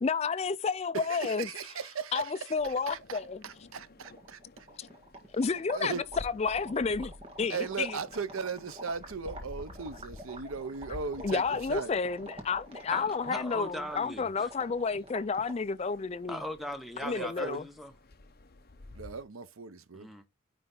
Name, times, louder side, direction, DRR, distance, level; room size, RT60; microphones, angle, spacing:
voice 1, 0.0-1.5 2.1-3.4 4.8-4.9 5.3-8.0 11.2-16.4 17.0-17.6, left 5 dB, 30° left, 0.3 m, -31 dB
voice 2, 0.9-4.7 5.7-6.0 7.5-11.9 17.0-17.6 18.9-20.1, right 5 dB, 80° right, 0.7 m, -38 dB
sound 1, 2.6-19.2, left 2 dB, 45° left, 0.8 m, -52 dB
sound 2, 3.7-3.8 4.0-15.7, right 1 dB, 25° right, 1.6 m, -48 dB
voice 3, 12.9-14.5 16.3-17.9 19.9-20.3, equal, ahead, 0.7 m, -39 dB
9.6 x 3.3 x 3.8 m
head